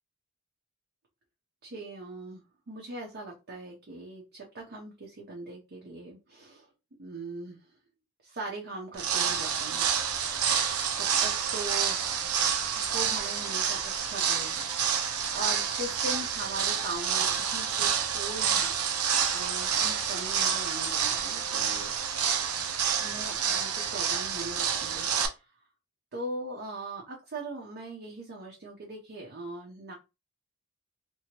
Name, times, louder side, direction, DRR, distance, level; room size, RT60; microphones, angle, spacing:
voice 1, 1.6-6.7 7.0-7.6 8.2-9.9 11.0-12.1 12.8-14.7 15.0-18.7 19.3-21.9 23.0-25.5 26.1-29.9, right 2 dB, 50° right, -1 dB, 0.7 m, -40 dB
sound 1, 8.9-25.3, right 7 dB, 85° right, 0.6 m, -28 dB
2.9 x 2.6 x 2.9 m, 0.27 s
head